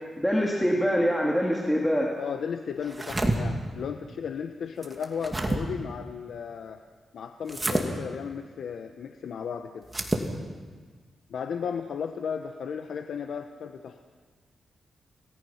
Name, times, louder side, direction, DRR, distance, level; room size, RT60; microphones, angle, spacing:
voice 1, 0.2-2.2, equal, 5° left, -2 dB, 2.6 m, -24 dB
voice 2, 2.2-6.8 7.1-9.9 11.3-14.0, left 7 dB, 75° left, 6 dB, 1.0 m, -35 dB
sound 1, 2.8-3.4 4.8-5.6 7.5-7.9 9.8-10.3, right 2 dB, 20° right, 2.5 m, -28 dB
28.0 x 18.5 x 5.8 m, 1.5 s
cardioid pair, 105°, 0 cm